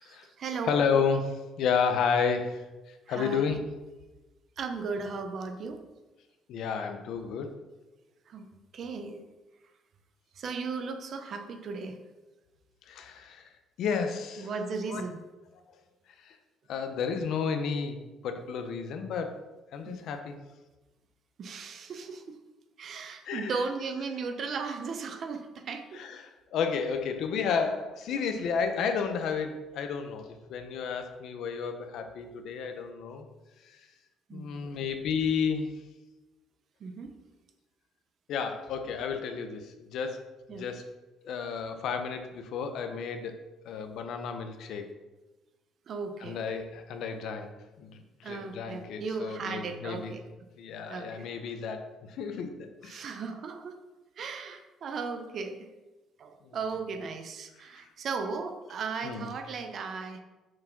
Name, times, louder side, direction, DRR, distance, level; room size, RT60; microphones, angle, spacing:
voice 1, 0.0-0.8 3.1-3.6 4.6-5.8 8.3-8.5 8.7-9.2 10.4-12.0 14.4-15.2 19.8-20.0 21.4-22.3 22.8-26.0 34.3-34.6 36.8-37.2 40.5-40.7 45.9-46.5 48.2-50.2 50.9-51.3 52.8-53.8 54.2-55.6 56.2-60.2, right 4 dB, 40° right, 6 dB, 0.7 m, -36 dB
voice 2, 0.6-3.6 6.5-7.5 12.9-13.5 13.8-14.5 14.9-15.0 16.2-16.4 16.7-19.4 19.7-20.3 23.2-23.6 25.9-33.2 33.6-33.9 34.3-35.8 38.3-40.2 40.5-40.9 41.2-43.4 43.6-44.9 46.2-47.5 47.8-50.1 50.6-53.1 56.4-56.6 57.8-57.9 59.0-59.3, left 6 dB, 60° left, 7 dB, 0.8 m, -32 dB
6.3 x 4.7 x 5.9 m, 1.1 s
cardioid pair, 170°, 0 cm